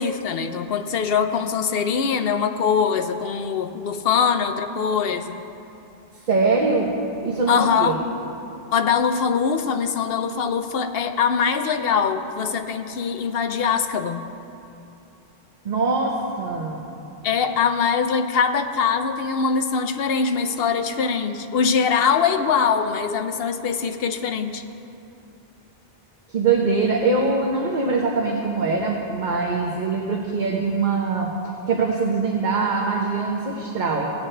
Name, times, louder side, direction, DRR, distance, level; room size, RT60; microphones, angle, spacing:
voice 1, 0.0-5.2 7.5-7.9 8.7-14.2 17.2-24.6, left 6 dB, 70° left, 7 dB, 0.8 m, -22 dB
voice 2, 6.3-6.9 7.2-8.0 15.6-16.8 26.3-31.3 31.7-34.1, right 4 dB, 50° right, -1 dB, 1.0 m, -22 dB
17.5 x 8.5 x 3.3 m, 2.8 s
omnidirectional pair, 1.0 m